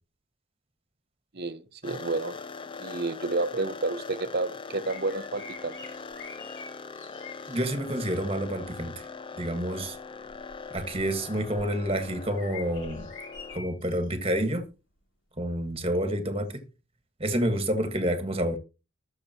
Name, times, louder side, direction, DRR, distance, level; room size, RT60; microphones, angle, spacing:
voice 1, 1.3-2.4 2.8-5.7, right 3 dB, 45° right, 0.9 m, -30 dB
sound 1, 1.8-13.6, left 4 dB, 25° left, 0.5 m, -42 dB
sound 2, 4.8-7.6 8.4-8.8 9.4-14.1 14.6-14.7 16.5-16.6, left 4 dB, 55° left, 2.9 m, -46 dB
voice 2, 7.5-9.0 9.4-10.0 10.7-13.1 13.5-14.7 15.4-16.6 17.2-18.6, equal, 25° right, 1.5 m, -28 dB
20.0 x 6.8 x 2.9 m
head